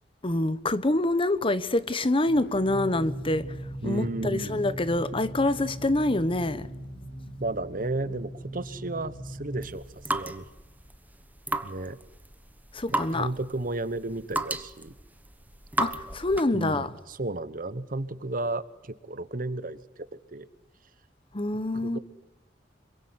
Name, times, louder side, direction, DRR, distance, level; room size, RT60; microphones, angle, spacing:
voice 1, 0.2-3.6 3.8-6.7 12.7-13.3 15.8-16.9 21.3-22.0, left 2 dB, 30° left, 1.1 m, -26 dB
sound 1, 2.3-11.0, right 1 dB, 90° left, 5.9 m, -40 dB
voice 2, 3.8-4.6 7.4-10.5 11.6-12.0 12.9-14.9 16.5-20.5 21.5-22.0, right 2 dB, 50° right, 1.2 m, -33 dB
sound 2, 9.6-16.6, right 2 dB, 10° right, 1.2 m, -34 dB
26.5 x 23.5 x 9.7 m
head